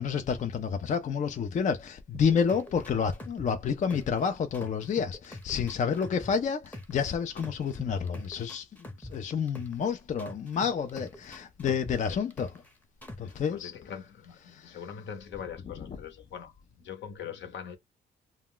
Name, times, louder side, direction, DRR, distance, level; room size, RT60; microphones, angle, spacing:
voice 1, 0.0-8.7 9.0-12.5 13.2-13.7 14.5-14.8, left 6 dB, 40° left, 0.4 m, -29 dB
sound 1, 2.1-4.2 4.5-7.0 7.4-9.9 10.2-12.7 13.0-13.4, left 1 dB, 10° left, 0.8 m, -43 dB
voice 2, 5.8-6.1 12.1-12.3 13.2-17.8, left 8 dB, 65° left, 0.9 m, -43 dB
2.2 x 2.2 x 3.6 m
cardioid pair, 90°, 20 cm